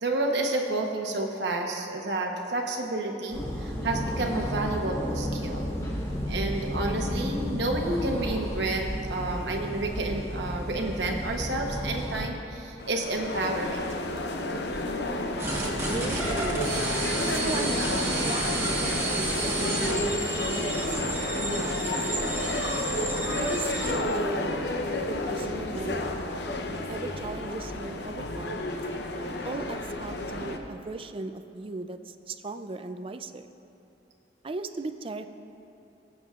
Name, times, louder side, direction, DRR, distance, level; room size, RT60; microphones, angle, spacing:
voice 1, 0.0-5.7 6.3-13.8, right 2 dB, 70° right, 1 dB, 1.0 m, -30 dB
sound 1, 3.3-12.3, equal, 15° left, 1.4 m, -32 dB
sound 2, 12.8-30.6, left 2 dB, 65° left, 0.8 m, -31 dB
sound 3, 15.4-24.0, right 2 dB, 15° right, 1.3 m, -31 dB
voice 2, 15.6-16.7 17.2-17.7 18.1-21.7 21.9-22.4 23.4-24.7 25.0-26.0 26.6-28.7 29.4-33.5 34.4-35.3, right 3 dB, 30° right, 9 dB, 0.4 m, -37 dB
22.5 x 7.7 x 2.5 m, 2.8 s
head